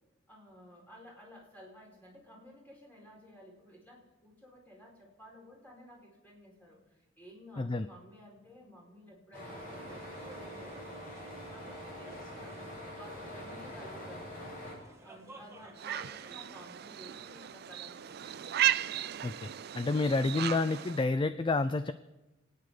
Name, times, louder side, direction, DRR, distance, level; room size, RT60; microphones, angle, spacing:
voice 1, 0.3-6.8 7.2-14.2 15.0-18.6, equal, 10° left, -2 dB, 4.6 m, -54 dB
voice 2, 7.6-7.9 19.2-19.5 19.7-21.9, left 3 dB, 25° left, 12 dB, 0.4 m, -29 dB
sound 1, 9.3-14.8, equal, 45° left, 6.8 m, -44 dB
sound 2, 9.9-17.5, right 2 dB, 15° right, 1.7 m, -55 dB
sound 3, 15.8-21.1, right 12 dB, 50° right, 0.4 m, -35 dB
29.0 x 9.8 x 4.9 m, 1.1 s
head